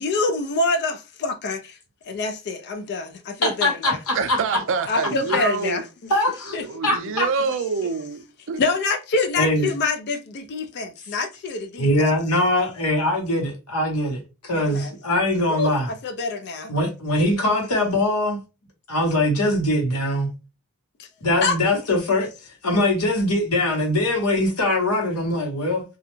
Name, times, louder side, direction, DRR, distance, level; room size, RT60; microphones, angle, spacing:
voice 1, 0.0-1.8 2.1-4.0 4.9-5.8 6.5-6.7 8.6-12.1 14.5-14.9 15.5-16.7 21.0-21.1 21.4-21.6, left 3 dB, 50° left, 0.4 m, -26 dB
voice 2, 3.4-4.4 6.1-6.6 6.8-7.3 9.4-9.7 11.8-15.9 16.7-18.4 18.9-20.3 21.2-22.3 22.6-25.8, left 1 dB, 80° left, 1.0 m, -22 dB
voice 3, 4.1-5.8 6.5-8.6, right 5 dB, 60° right, 0.4 m, -26 dB
2.3 x 2.1 x 3.0 m
head